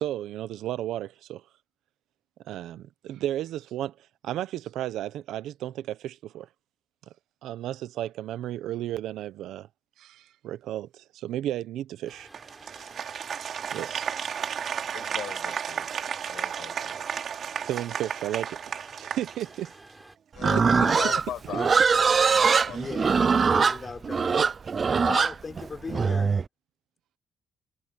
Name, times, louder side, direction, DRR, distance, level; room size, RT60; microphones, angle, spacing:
voice 1, 0.0-1.4 2.4-4.0 4.2-6.5 7.4-9.7 10.0-12.3 12.7-12.8 13.7-14.1 17.6-18.6 19.0-19.7 22.7-22.8 24.3-24.5, right 12 dB, 85° right, 0.9 m, -33 dB
sound 1, 12.1-20.2, right 1 dB, 10° right, 8.0 m, -52 dB
Applause, 12.3-19.9, right 7 dB, 55° right, 3.3 m, -33 dB
voice 2, 14.9-15.9 16.2-17.1 20.3-21.9 22.4-23.3, left 11 dB, 75° left, 5.9 m, -39 dB
Livestock farm animals working animals, 20.4-26.4, right 5 dB, 40° right, 0.5 m, -22 dB
voice 3, 20.5-21.1 22.8-24.5 24.9-26.3, left 4 dB, 35° left, 5.0 m, -37 dB
cardioid pair, 90°, 0 cm